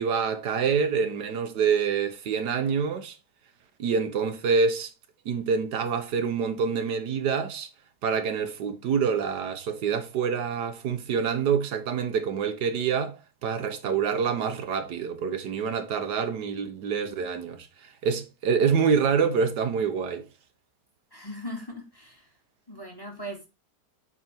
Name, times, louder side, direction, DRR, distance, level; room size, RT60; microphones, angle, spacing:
voice 1, 0.0-3.2 3.8-4.9 5.2-7.7 8.0-20.2, right 6 dB, 85° right, 1.6 m, -26 dB
voice 2, 21.1-22.3 22.7-23.5, equal, 15° left, 2.0 m, -39 dB
8.5 x 3.7 x 4.4 m
omnidirectional pair, 1.8 m